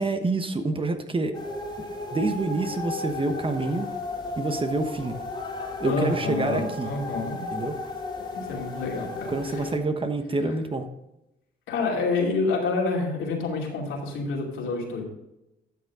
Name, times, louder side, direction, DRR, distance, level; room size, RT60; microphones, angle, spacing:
voice 1, 0.0-1.4 2.1-3.9 4.4-5.2 5.8-6.9 7.5-7.8 9.3-10.9, right 2 dB, 25° right, 7 dB, 1.1 m, -27 dB
sound 1, 1.3-9.8, left 2 dB, 20° left, 2.2 m, -35 dB
voice 2, 5.8-7.4 8.3-9.6 11.7-15.0, left 3 dB, 80° left, -1 dB, 2.8 m, -28 dB
12.0 x 6.6 x 3.7 m, 0.91 s
cardioid pair, 90°, 20 cm